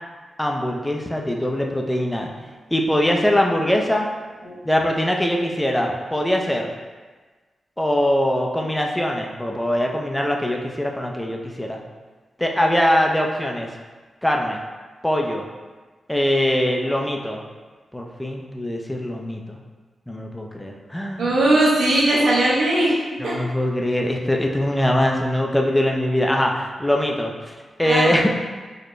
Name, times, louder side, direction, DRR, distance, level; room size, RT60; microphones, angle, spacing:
voice 1, 0.4-2.3 2.7-4.1 4.6-6.7 7.8-11.8 12.4-13.7 14.2-14.6 15.0-15.5 16.1-17.4 17.9-19.6 20.1-21.3 23.2-27.3 27.8-28.3, left 1 dB, 10° left, 0 dB, 0.5 m, -22 dB
voice 2, 21.2-22.9 23.2-23.4 27.8-28.2, right 1 dB, 80° right, -6 dB, 1.0 m, -19 dB
4.2 x 2.2 x 3.1 m, 1.3 s
supercardioid pair, 40°, 0 cm